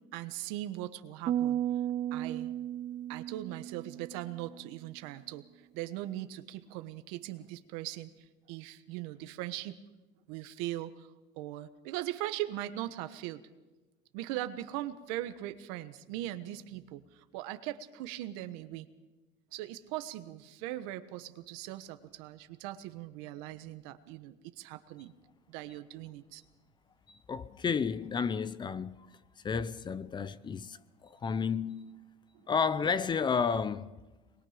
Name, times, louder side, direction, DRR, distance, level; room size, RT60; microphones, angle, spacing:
voice 1, 0.1-1.6 2.1-2.5 3.1-5.4 5.7-8.1 8.5-9.8 10.3-13.4 14.1-18.9 19.5-25.1 25.5-26.4 32.3-32.4, right 14 dB, 80° right, 1.3 m, -40 dB
sound 1, 1.3-4.7, right 11 dB, 40° right, 0.6 m, -34 dB
voice 2, 27.1-29.0 29.4-32.0 32.5-34.0, left 6 dB, 25° left, 0.7 m, -32 dB
24.5 x 21.5 x 5.1 m
cardioid pair, 125°, 18 cm